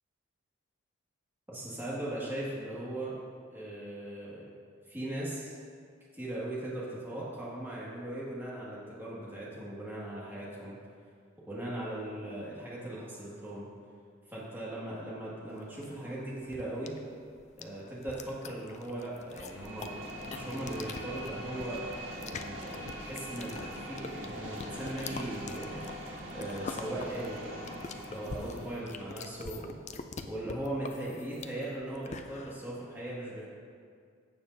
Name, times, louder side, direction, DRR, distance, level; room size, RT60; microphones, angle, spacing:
voice 1, 1.5-3.2 3.5-4.4 4.9-5.5 6.1-10.7 11.5-13.7 14.3-17.0 17.6-20.0 20.3-21.8 22.2-25.9 26.3-27.6 28.1-29.8 30.3-33.4, right 1 dB, 10° right, -7 dB, 2.0 m, -39 dB
sound 1, 15.6-32.6, left 4 dB, 35° left, 0.4 m, -45 dB
sound 2, 19.3-29.2, equal, 70° right, 1.8 m, -43 dB
15.5 x 6.9 x 2.7 m, 2.1 s
head